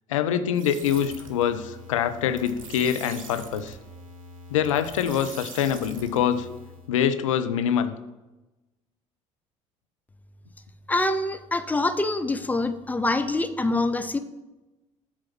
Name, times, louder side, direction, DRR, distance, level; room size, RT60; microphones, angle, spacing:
voice 1, 0.1-3.8 4.5-6.5 6.9-7.9, left 9 dB, 70° left, 10 dB, 0.5 m, -25 dB
sound 1, 0.5-6.9, right 3 dB, 75° right, 0.8 m, -43 dB
voice 2, 10.9-14.2, left 2 dB, 10° left, 9 dB, 0.6 m, -25 dB
8.0 x 3.1 x 5.9 m, 1.0 s
figure-of-eight pair, 55°, 17 cm